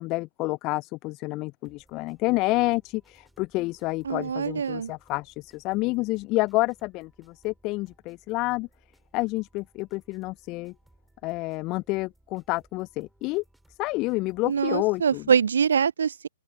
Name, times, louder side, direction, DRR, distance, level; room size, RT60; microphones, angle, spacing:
voice 1, 0.0-8.7 9.1-10.7 11.2-13.4 13.8-15.2, left 22 dB, 30° left, 0.4 m, -29 dB
sound 1, 1.6-15.4, right 1 dB, 5° right, 3.8 m, -63 dB
voice 2, 4.0-4.9 14.5-16.3, right 7 dB, 65° right, 0.4 m, -24 dB
open air
figure-of-eight pair, 125°, 0 cm